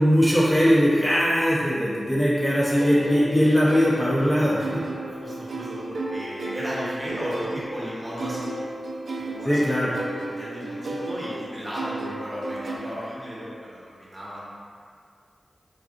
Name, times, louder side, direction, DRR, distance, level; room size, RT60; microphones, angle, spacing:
voice 1, 0.0-4.8 9.4-9.9, equal, 20° left, -8 dB, 0.6 m, -20 dB
sound 1, 2.8-12.8, right 2 dB, 90° right, 0.4 m, -34 dB
voice 2, 5.1-8.7 9.1-9.9 10.3-14.4, equal, 20° right, -8 dB, 0.8 m, -35 dB
3.7 x 2.4 x 2.4 m, 2.2 s
wide cardioid pair, 65°, 0 cm